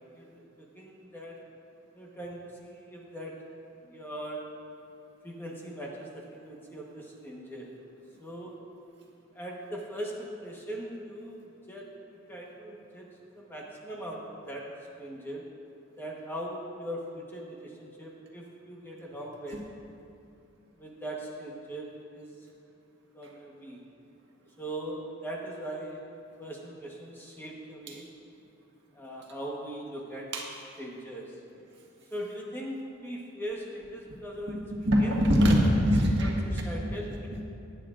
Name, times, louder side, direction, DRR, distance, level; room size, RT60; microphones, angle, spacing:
voice 1, 0.1-1.4 1.9-3.4 3.8-4.5 5.2-7.7 8.2-8.6 9.3-13.1 13.3-14.7 15.0-15.5 16.0-19.7 20.8-22.3 23.1-23.8 24.6-26.0 26.4-28.1 28.9-30.3 30.8-31.3 32.1-34.6 35.0-35.1 35.5-35.7 36.2-37.4, right 1 dB, 10° left, -3 dB, 1.1 m, -40 dB
voice 2, 34.5-36.3 37.3-37.4, equal, 55° right, -2 dB, 1.6 m, -23 dB
18.0 x 10.5 x 2.5 m, 2.5 s
head